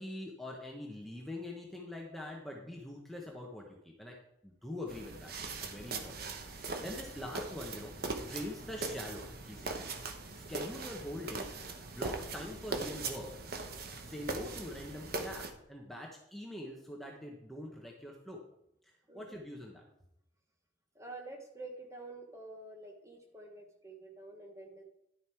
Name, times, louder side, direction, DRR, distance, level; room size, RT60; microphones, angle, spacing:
voice 1, 0.0-4.1 4.4-6.1 6.5-9.9 10.3-11.5 11.9-13.3 14.0-18.4 19.1-19.8, left 1 dB, ahead, -1 dB, 1.1 m, -44 dB
sound 1, 4.9-15.5, right 3 dB, 55° right, 1.1 m, -40 dB
voice 2, 19.1-19.4 20.9-24.8, right 2 dB, 15° right, 2 dB, 1.3 m, -48 dB
11.0 x 7.0 x 4.6 m, 0.80 s
head